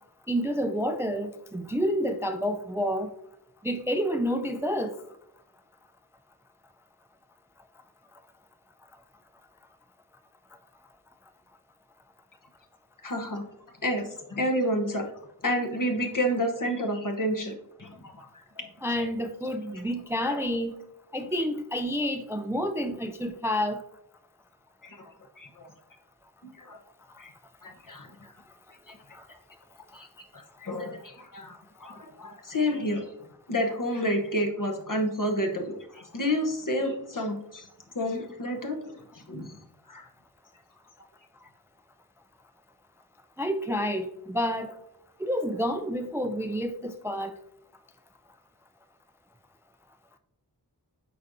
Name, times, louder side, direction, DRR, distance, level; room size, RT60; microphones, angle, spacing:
voice 1, 0.3-3.1 3.6-4.9 18.8-20.7 21.1-23.8 29.1-29.3 43.4-44.7 45.2-47.3, equal, 5° right, 8 dB, 0.4 m, -29 dB
voice 2, 13.0-13.4 13.8-15.1 15.4-17.5 17.8-18.3 18.6-18.7 18.9-19.1 20.3-20.4 24.8-25.0 25.4-25.7 26.6-26.8 27.2-27.3 27.6-28.1 28.9-29.0 29.9-30.1 30.3-33.1 33.5-37.7 37.9-39.6 39.9-40.1, equal, 50° left, 3 dB, 1.0 m, -30 dB
8.2 x 4.9 x 2.6 m, 0.79 s
wide cardioid pair, 50°, 41 cm